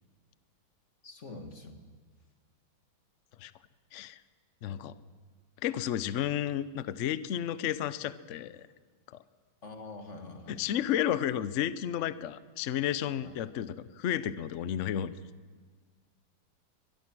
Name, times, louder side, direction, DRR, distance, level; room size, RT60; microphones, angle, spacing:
voice 1, 1.0-1.8 4.7-4.8 9.6-10.6 13.2-13.3, left 3 dB, 35° left, 4 dB, 2.0 m, -45 dB
voice 2, 4.6-4.9 5.6-8.7 10.5-15.1, left 10 dB, 85° left, 15 dB, 0.6 m, -32 dB
23.5 x 21.0 x 6.2 m, 1.5 s
omnidirectional pair, 2.2 m